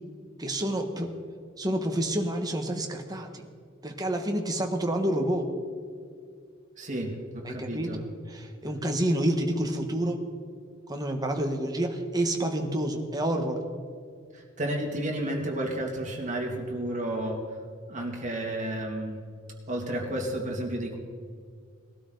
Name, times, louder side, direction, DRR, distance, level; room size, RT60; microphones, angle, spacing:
voice 1, 0.4-1.1 1.6-3.4 3.8-5.5 7.4-10.2 10.9-13.6, right 1 dB, 20° right, 3 dB, 1.5 m, -28 dB
voice 2, 6.8-8.0 14.3-17.4 17.9-19.2 19.7-21.0, right 1 dB, 40° right, 0 dB, 2.6 m, -32 dB
20.5 x 12.5 x 4.0 m, 2.1 s
head